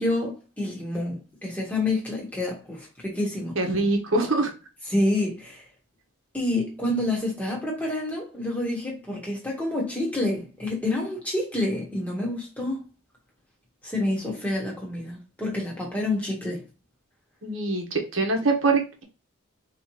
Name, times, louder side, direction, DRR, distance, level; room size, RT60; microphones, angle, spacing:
voice 1, 0.0-3.6 4.9-5.6 6.3-12.8 13.8-16.6, left 1 dB, 5° left, 1.3 m, -28 dB
voice 2, 3.6-4.5 17.4-19.0, right 3 dB, 65° right, 1.1 m, -24 dB
4.8 x 3.1 x 2.8 m
head